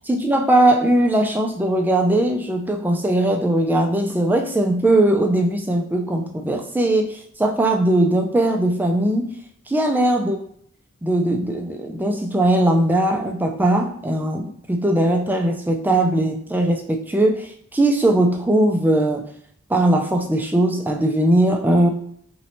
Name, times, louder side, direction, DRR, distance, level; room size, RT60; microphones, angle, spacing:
voice 1, 0.1-9.3 9.7-10.4 11.0-19.3 19.7-21.9, right 1 dB, 10° right, 2 dB, 0.3 m, -19 dB
3.0 x 2.6 x 2.9 m, 0.66 s
head